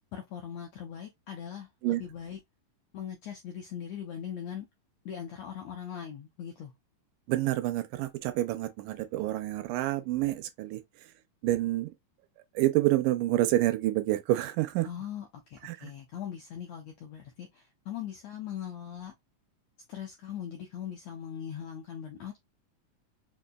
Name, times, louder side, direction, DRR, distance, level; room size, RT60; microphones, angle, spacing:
voice 1, 0.1-2.4 2.9-4.7 5.0-6.7 14.8-19.1 19.9-22.4, left 9 dB, 85° left, 1.5 m, -40 dB
voice 2, 7.3-10.8 11.4-11.9 12.6-14.9 15.6-15.9, right 15 dB, 80° right, 2.0 m, -28 dB
5.1 x 2.7 x 2.2 m
omnidirectional pair, 3.9 m